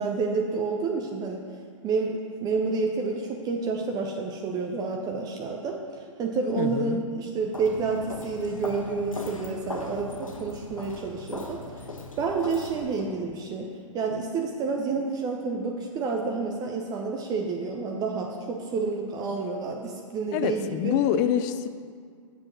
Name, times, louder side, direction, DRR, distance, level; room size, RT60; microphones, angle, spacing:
voice 1, 0.0-1.4 1.8-11.6 12.2-13.7 13.9-21.0, right 4 dB, 25° right, 1 dB, 0.7 m, -29 dB
voice 2, 6.6-7.0 20.3-21.7, left 9 dB, 35° left, 11 dB, 0.5 m, -26 dB
Walk footsteps, 7.5-13.1, left 2 dB, 85° left, 1.0 m, -39 dB
7.6 x 6.9 x 5.9 m, 2.1 s
figure-of-eight pair, 110°, 17 cm